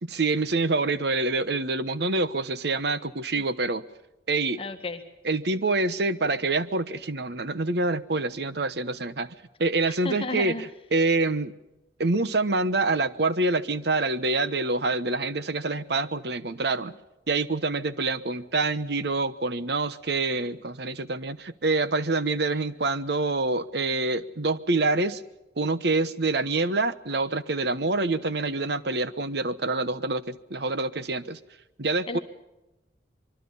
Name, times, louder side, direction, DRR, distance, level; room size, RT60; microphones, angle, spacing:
voice 1, 0.0-3.8 4.3-4.6 5.2-9.3 9.6-10.6 10.9-11.5 12.0-17.0 17.3-25.2 25.6-31.4 31.8-32.2, right 3 dB, 65° right, 13 dB, 1.1 m, -26 dB
voice 2, 4.6-5.0 9.8-10.6 32.1-32.2, left 2 dB, 30° left, 6 dB, 1.7 m, -33 dB
25.5 x 23.5 x 5.5 m, 0.97 s
head